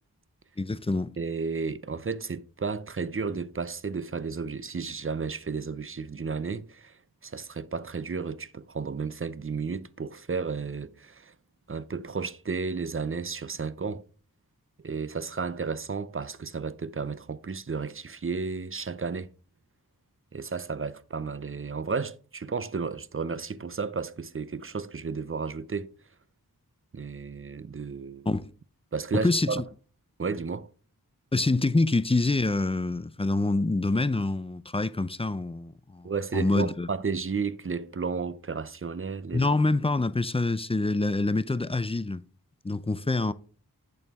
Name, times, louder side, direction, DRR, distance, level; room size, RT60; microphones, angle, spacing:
voice 1, 0.6-1.1 28.3-28.5 29.2-29.6 31.3-36.9 39.3-42.2 42.6-43.3, left 2 dB, 15° left, 0.4 m, -26 dB
voice 2, 1.2-11.3 11.7-14.0 14.8-19.3 20.3-25.9 26.9-28.3 28.9-29.6 30.2-30.7 36.0-39.5, right 5 dB, 35° right, 0.5 m, -33 dB
8.1 x 6.9 x 3.6 m
wide cardioid pair, 45°, 37 cm